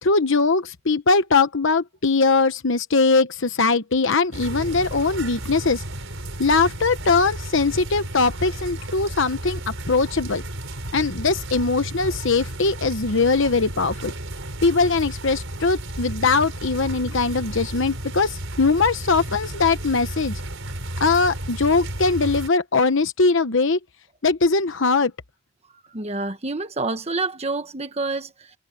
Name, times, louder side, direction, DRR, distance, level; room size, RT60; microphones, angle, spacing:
voice 1, 0.0-5.8 6.4-9.6 9.9-10.4 10.9-14.1 14.6-20.4 21.0-23.8 24.2-25.1, left 4 dB, 60° left, 1.0 m, -21 dB
sound 1, 4.3-22.5, right 1 dB, 65° right, 5.8 m, -33 dB
voice 2, 25.9-28.6, right 3 dB, 30° right, 1.2 m, -28 dB
head